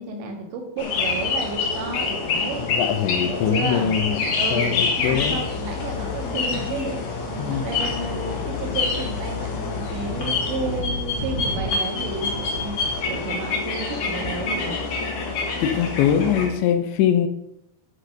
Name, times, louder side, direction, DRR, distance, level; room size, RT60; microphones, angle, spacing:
voice 1, 0.0-2.6 3.3-4.0 4.4-4.9 5.3-7.0 7.3-14.8, right 4 dB, 75° right, 3 dB, 4.0 m, -32 dB
sound 1, 0.8-16.5, left 4 dB, 50° left, 2.9 m, -27 dB
voice 2, 2.7-4.3 4.5-5.4 7.4-7.6 15.6-17.3, left 9 dB, 80° left, 9 dB, 3.1 m, -22 dB
sound 2, 4.1-4.3 4.6-4.7 4.9-7.1 7.8-8.0 8.9-9.2 10.1-10.4 11.2-11.3 11.7-11.9 13.1-13.3 13.7-14.6 15.3-15.5, left 3 dB, 30° left, 1.9 m, -37 dB
sound 3, 5.0-11.0, left 6 dB, 10° left, 1.8 m, -34 dB
12.0 x 5.9 x 6.5 m, 0.81 s
omnidirectional pair, 5.3 m